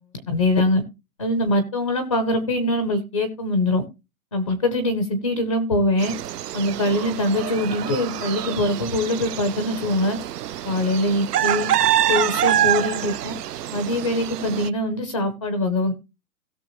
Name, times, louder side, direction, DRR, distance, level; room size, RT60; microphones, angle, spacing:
voice 1, 0.3-0.8 1.2-3.8 4.3-6.1 6.5-10.2 10.6-11.7 12.1-13.4 13.7-15.9, left 1 dB, 20° left, 10 dB, 0.5 m, -23 dB
sound 1, 6.0-14.7, right 12 dB, 75° right, 0.7 m, -26 dB
17.0 x 6.5 x 3.0 m, 0.27 s
hypercardioid pair, 165°, 47 cm